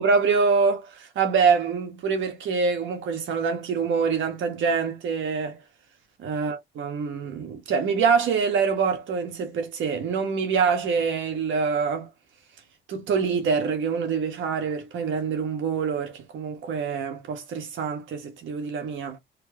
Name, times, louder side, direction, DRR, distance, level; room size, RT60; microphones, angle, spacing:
voice 1, 0.0-5.6 6.2-12.1 12.9-19.2, right 5 dB, 75° right, 1.5 m, -25 dB
4.4 x 2.1 x 3.4 m
cardioid pair, 90°, 20 cm